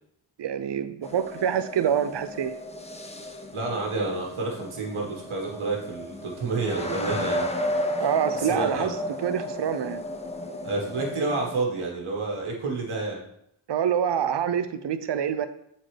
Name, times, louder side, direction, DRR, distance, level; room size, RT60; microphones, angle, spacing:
voice 1, 0.4-2.5 8.0-9.0 9.2-10.0 13.7-15.5, right 8 dB, 55° right, 11 dB, 0.6 m, -26 dB
sound 1, 1.0-11.6, left 1 dB, 15° left, 0.6 m, -33 dB
voice 2, 3.5-7.4 8.0-8.1 8.4-8.9 10.6-13.2, right 3 dB, 75° right, 0 dB, 1.6 m, -29 dB
7.6 x 4.1 x 3.3 m, 0.74 s
wide cardioid pair, 80°, 49 cm